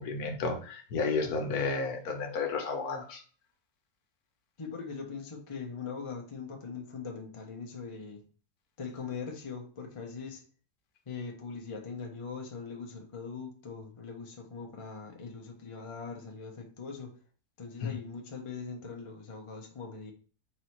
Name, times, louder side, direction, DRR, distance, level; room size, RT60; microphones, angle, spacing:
voice 1, 0.0-3.2 17.8-17.9, left 4 dB, 65° left, 1.3 m, -32 dB
voice 2, 4.6-8.2 8.8-10.4 11.1-17.2 17.6-20.1, left 5 dB, 35° left, 0.5 m, -41 dB
4.0 x 2.7 x 4.4 m
omnidirectional pair, 1.8 m